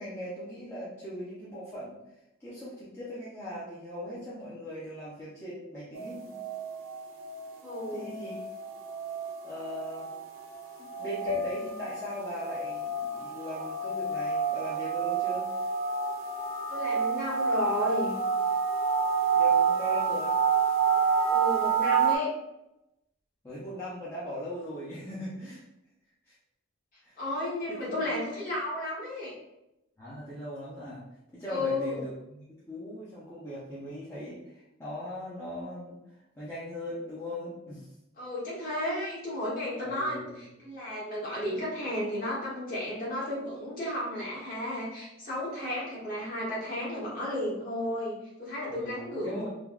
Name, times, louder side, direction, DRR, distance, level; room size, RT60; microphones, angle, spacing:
voice 1, 0.0-2.0 2.4-6.4 7.9-8.4 9.4-10.1 10.8-15.5 19.3-20.4 23.4-25.6 26.3-26.4 27.0-27.1 27.7-27.9 30.0-31.0 31.3-36.0 36.4-37.9 39.8-40.3 48.7-49.5, left 1 dB, 10° left, -10 dB, 0.5 m, -39 dB
sound 1, 5.9-22.2, right 5 dB, 75° right, 0.4 m, -29 dB
voice 2, 7.6-8.2 16.7-18.1 21.3-22.3 27.2-29.3 31.5-32.0 38.2-49.5, left 1 dB, 40° left, -6 dB, 1.1 m, -33 dB
sound 2, 11.3-15.5, left 6 dB, 80° left, 1.5 m, -41 dB
3.3 x 2.2 x 2.3 m, 0.89 s
head